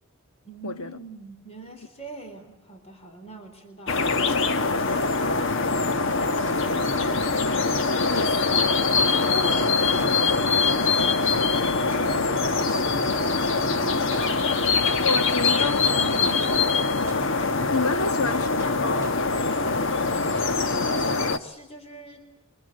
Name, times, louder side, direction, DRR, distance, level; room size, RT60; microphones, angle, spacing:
voice 1, 0.4-5.2 5.7-7.1 8.2-8.3 9.1-14.9 15.4-17.0 19.8-20.3 20.5-22.4, equal, 30° left, 3.8 m, -40 dB
sound 1, 3.9-21.4, left 4 dB, 55° left, 1.2 m, -23 dB
sound 2, 6.4-6.7 7.2-7.5 8.1-8.4 9.1-9.4 10.0-10.3 11.1-11.4 11.9-12.2 12.7-12.9 13.4-13.5 14.0-14.4 14.8-15.1 15.6-15.9 16.4-16.7 17.1-17.4 18.1-18.2 19.0-19.3, right 3 dB, 15° right, 3.5 m, -46 dB
voice 2, 15.0-15.8 17.7-19.2, left 3 dB, 80° left, 1.4 m, -28 dB
27.5 x 24.5 x 7.9 m
head